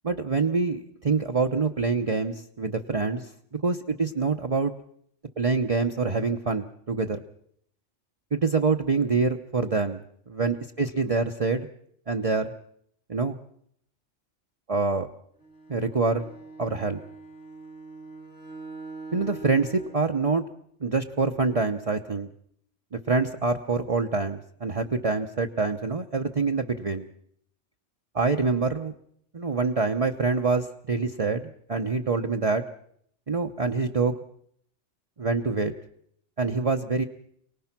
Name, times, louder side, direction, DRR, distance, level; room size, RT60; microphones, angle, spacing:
voice 1, 0.0-4.7 5.4-7.2 8.3-10.0 10.3-11.7 12.1-12.5 13.1-13.4 14.7-15.1 15.7-16.3 16.6-17.0 19.1-20.4 20.8-22.3 22.9-27.1 28.1-28.9 29.3-32.6 33.3-34.1 35.2-35.7 36.4-37.0, right 4 dB, 30° right, 4 dB, 0.9 m, -26 dB
Bowed string instrument, 15.4-20.1, right 3 dB, 65° left, 3.9 m, -43 dB
28.0 x 19.0 x 6.0 m, 0.69 s
omnidirectional pair, 1.3 m